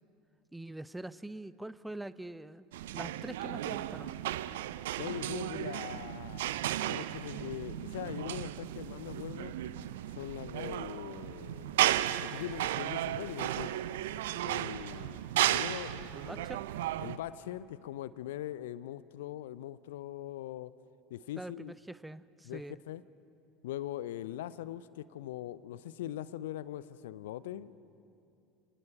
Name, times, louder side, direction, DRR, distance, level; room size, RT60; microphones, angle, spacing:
voice 1, 0.5-4.1 16.1-16.7 21.4-22.8, right 1 dB, 5° right, 17 dB, 0.6 m, -44 dB
sound 1, 2.7-17.2, right 13 dB, 65° right, 0.6 m, -34 dB
voice 2, 5.0-9.5 10.1-13.7 14.3-16.5 17.0-20.7 21.1-21.7 22.5-23.0 23.6-28.0, left 12 dB, 65° left, 18 dB, 0.5 m, -42 dB
27.5 x 19.0 x 6.6 m, 2.6 s
figure-of-eight pair, 70°, 0 cm